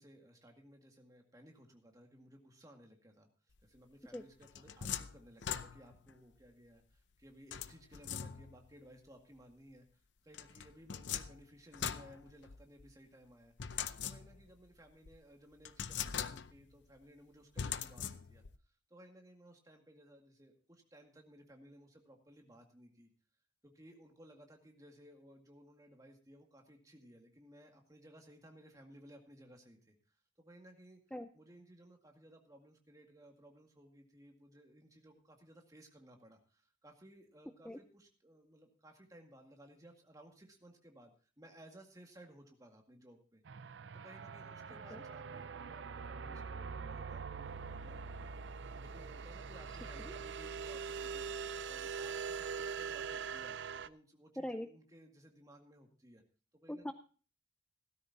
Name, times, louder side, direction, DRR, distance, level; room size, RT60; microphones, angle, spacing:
voice 1, 0.0-3.3 3.6-18.4 18.9-23.1 23.6-31.0 31.3-43.4 43.9-48.4 48.8-51.3 51.7-53.6 53.8-56.2 56.5-56.9, right 1 dB, 20° right, 3 dB, 2.0 m, -59 dB
sound 1, 4.1-6.1 7.5-8.7 10.3-12.9 13.6-14.6 15.1-15.2 15.7-16.7 17.6-18.6, left 8 dB, 75° left, 0.6 m, -42 dB
voice 2, 4.1-4.2 31.1-31.3 37.6-37.8 54.4-54.7 56.7-56.9, left 1 dB, 5° left, 7 dB, 0.5 m, -40 dB
sound 2, 43.5-53.9, right 6 dB, 80° right, 0.5 m, -43 dB
16.5 x 13.5 x 2.7 m, 0.37 s
head